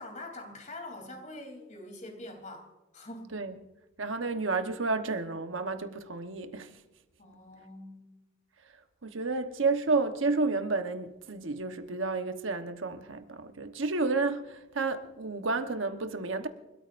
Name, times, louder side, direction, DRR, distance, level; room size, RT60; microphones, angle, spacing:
voice 1, 0.0-3.3 7.2-8.2, left 1 dB, 40° left, 3.3 m, -44 dB
voice 2, 4.0-6.7 9.0-16.5, right 3 dB, 70° right, 1.1 m, -31 dB
30.0 x 13.5 x 2.6 m
head